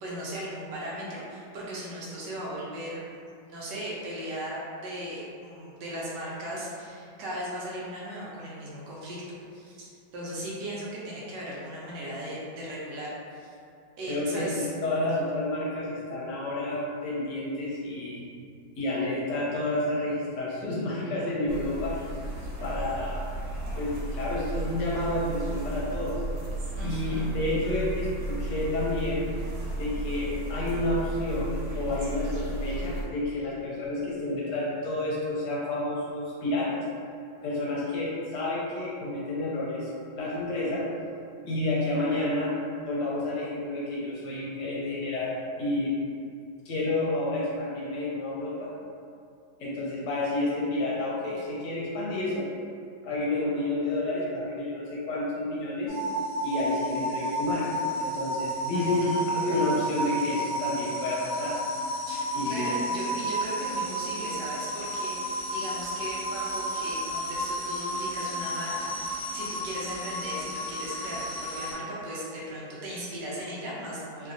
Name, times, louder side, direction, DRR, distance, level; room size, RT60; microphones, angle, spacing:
voice 1, 0.0-3.0 3.5-13.5 14.0-14.7 26.8-27.3 58.7-59.2 62.1-74.3, right 1 dB, 75° right, -6 dB, 1.2 m, -37 dB
voice 2, 14.1-18.3 18.8-21.9 22.6-23.2 23.7-26.2 26.8-29.2 29.8-36.7 37.4-40.8 41.4-42.5 42.8-45.3 45.6-46.0 46.6-48.7 49.6-52.4 53.0-55.9 56.4-59.1 59.4-61.6 62.3-62.8, left 2 dB, 70° left, -6 dB, 1.2 m, -30 dB
sound 1, 21.5-33.1, right 1 dB, 90° right, 1.4 m, -34 dB
sound 2, 55.9-71.7, right 1 dB, 45° left, 1.2 m, -32 dB
3.1 x 2.7 x 2.4 m, 2.4 s
omnidirectional pair, 2.0 m